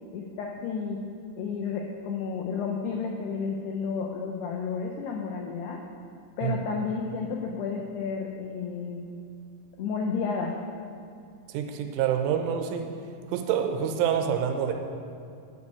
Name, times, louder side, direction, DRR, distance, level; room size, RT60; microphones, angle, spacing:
voice 1, 0.1-1.0 1.4-5.8 6.4-9.0 9.8-10.6, left 5 dB, 85° left, 1 dB, 2.3 m, -31 dB
voice 2, 11.5-12.9 13.3-14.7, right 8 dB, 80° right, 5 dB, 3.2 m, -27 dB
10.0 x 5.4 x 8.2 m, 2.4 s
omnidirectional pair, 5.6 m